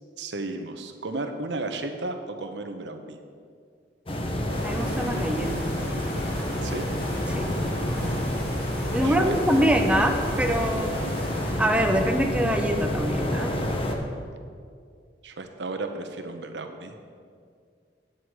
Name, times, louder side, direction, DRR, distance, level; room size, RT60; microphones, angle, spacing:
voice 1, 0.2-3.2 6.6-6.9 9.0-9.6 11.0-11.2 15.2-17.0, right 2 dB, 85° right, 6 dB, 0.9 m, -34 dB
sound 1, 4.1-14.0, left 1 dB, 30° left, 0.9 m, -29 dB
sound 2, 4.5-11.5, equal, 60° left, 2.9 m, -37 dB
voice 2, 4.6-5.7 7.3-7.5 8.9-11.0 11.6-13.5, equal, 5° right, 4 dB, 0.7 m, -24 dB
9.7 x 8.0 x 4.7 m, 2.2 s
head